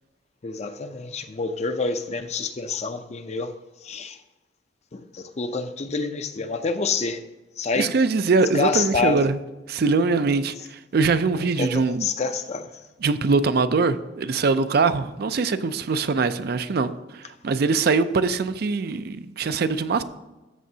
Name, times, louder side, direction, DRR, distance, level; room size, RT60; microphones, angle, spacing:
voice 1, 0.4-3.5 3.8-4.2 4.9-7.2 7.6-7.9 8.5-9.2 11.4-12.8, left 4 dB, 35° left, 0.5 m, -27 dB
voice 2, 7.7-9.4 9.7-12.1 13.0-20.0, right 4 dB, 55° right, 0.4 m, -22 dB
13.5 x 7.5 x 2.8 m
head